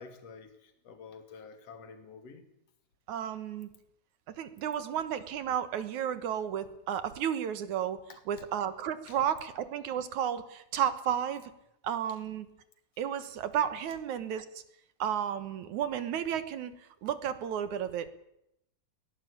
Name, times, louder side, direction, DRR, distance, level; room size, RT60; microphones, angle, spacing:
voice 1, 0.0-2.4 8.1-8.2 9.1-9.2, left 5 dB, 55° left, 8 dB, 3.6 m, -49 dB
voice 2, 3.1-3.7 4.4-8.0 8.3-11.5 11.8-12.5 13.0-14.5 15.0-16.7 17.0-18.1, right 9 dB, 70° right, 13 dB, 2.6 m, -32 dB
23.0 x 18.0 x 8.7 m, 0.80 s
omnidirectional pair, 3.6 m